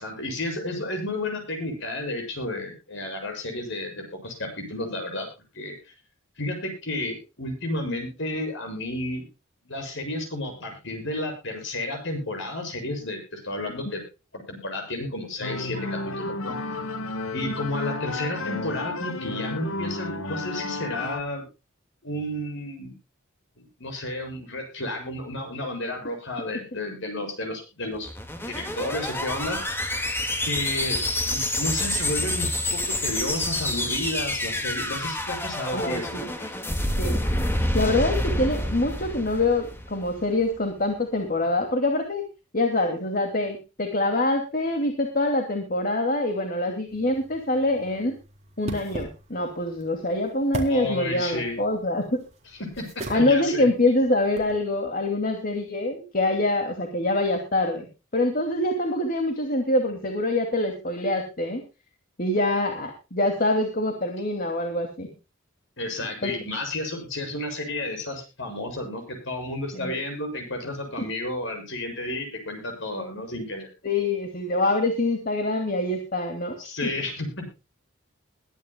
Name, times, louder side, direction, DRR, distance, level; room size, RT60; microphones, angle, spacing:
voice 1, 0.0-5.3 5.5-5.8 6.4-9.3 9.7-14.0 14.3-16.8 17.3-21.5 22.0-22.9 23.6-28.1 28.5-29.6 30.4-36.5 50.7-51.6 52.6-53.7 65.8-73.7 76.6-77.5, left 1 dB, 60° left, 4 dB, 7.4 m, -32 dB
sound 1, 15.4-21.2, left 2 dB, 85° left, 1.7 m, -32 dB
sound 2, 27.9-40.3, left 1 dB, 10° left, 2.0 m, -28 dB
voice 2, 35.7-36.3 37.0-37.2 37.7-42.2 42.5-48.2 48.6-52.2 53.1-57.9 58.1-61.6 62.2-65.1 66.2-66.3 69.7-70.0 73.8-76.5 76.8-76.9, left 2 dB, 45° left, 4 dB, 2.6 m, -25 dB
sound 3, 46.9-54.6, right 1 dB, 35° right, 4.1 m, -40 dB
22.5 x 11.0 x 2.3 m, 0.30 s
head